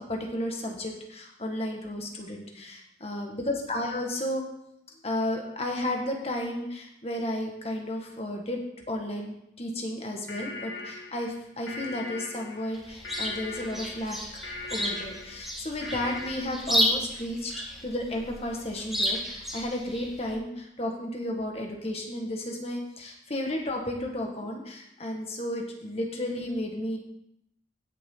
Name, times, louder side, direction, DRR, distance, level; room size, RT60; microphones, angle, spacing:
voice 1, 0.0-4.4 5.0-8.6 8.9-14.2 14.7-17.5 17.8-27.0, left 1 dB, 35° left, 1 dB, 1.7 m, -33 dB
sound 1, 10.0-16.3, left 2 dB, 80° left, 1.8 m, -40 dB
Chirp tweet, 12.7-20.3, equal, ahead, 1.7 m, -32 dB
16.0 x 6.9 x 3.9 m, 0.78 s
head